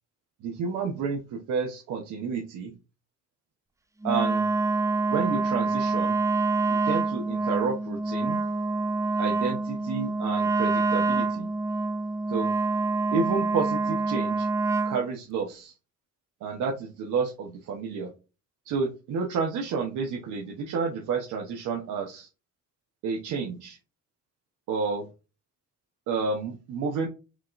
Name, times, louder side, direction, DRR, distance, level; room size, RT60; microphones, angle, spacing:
voice 1, 0.4-2.7 4.0-4.5 5.1-6.2 6.7-8.4 9.2-11.5 12.3-12.5 13.1-14.5 14.8-15.7 16.4-18.1 18.6-22.3 23.0-23.8 24.7-25.1 26.1-27.1, right 5 dB, 85° right, 0 dB, 1.1 m, -30 dB
Wind instrument woodwind instrument, 4.0-15.0, right 3 dB, 10° right, 0.4 m, -26 dB
5.0 x 3.7 x 2.5 m, 0.30 s
cardioid pair, 90°, 30 cm